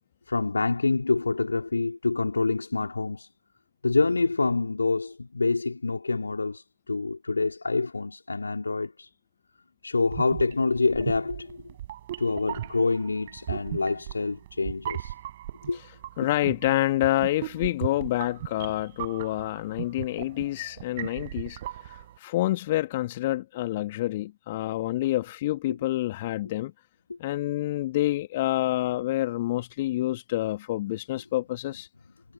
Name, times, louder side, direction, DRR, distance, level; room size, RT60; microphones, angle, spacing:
voice 1, 0.3-3.3 3.8-9.1 9.8-11.6 12.2-15.1 15.7-15.8 27.1-27.2, left 3 dB, 80° left, 3.2 m, -26 dB
sound 1, 10.0-22.2, right 13 dB, 60° right, 4.6 m, -38 dB
voice 2, 16.2-26.7 27.2-31.9, left 15 dB, 55° left, 1.9 m, -28 dB
figure-of-eight pair, 90°, 0 cm